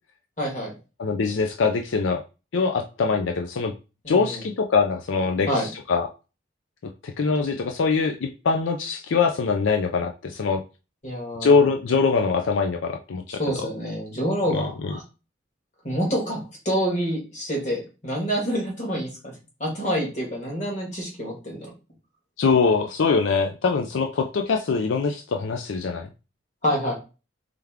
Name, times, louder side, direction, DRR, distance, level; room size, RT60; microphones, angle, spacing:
voice 1, 0.4-0.7 4.0-4.4 5.5-5.7 11.0-11.7 13.3-15.0 15.8-16.4 16.6-19.3 19.6-21.7 26.6-26.9, equal, 35° left, -2 dB, 1.7 m, -27 dB
voice 2, 1.0-2.2 2.5-3.7 4.1-6.1 7.0-10.6 11.4-13.4 14.5-14.9 22.4-26.1, left 4 dB, 80° left, 5 dB, 0.4 m, -23 dB
3.5 x 3.3 x 3.5 m, 0.32 s
head